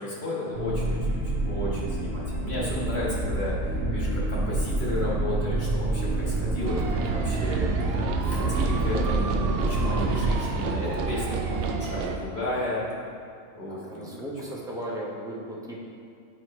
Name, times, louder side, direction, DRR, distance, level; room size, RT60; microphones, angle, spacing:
voice 1, 0.0-3.5 3.9-7.7 8.2-12.8 13.5-14.1, left 1 dB, 50° left, -6 dB, 1.7 m, -33 dB
sound 1, 0.5-10.3, right 2 dB, 80° right, 1.2 m, -28 dB
voice 2, 6.2-6.6 7.9-8.2 9.8-10.1 13.7-15.8, right 1 dB, 5° right, -4 dB, 0.7 m, -37 dB
sound 2, 6.6-12.2, right 5 dB, 65° right, 0.6 m, -29 dB
8.9 x 4.6 x 3.1 m, 2.3 s
omnidirectional pair, 1.4 m